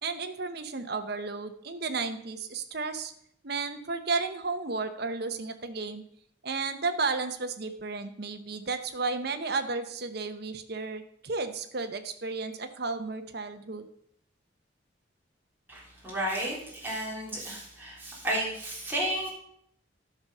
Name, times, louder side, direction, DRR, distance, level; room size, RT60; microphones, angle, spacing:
voice 1, 0.0-3.1 3.4-6.0 6.4-13.9, right 4 dB, 55° right, 8 dB, 0.9 m, -33 dB
voice 2, 15.7-19.3, right 1 dB, 10° right, -5 dB, 3.4 m, -32 dB
11.0 x 6.3 x 5.5 m, 0.69 s
head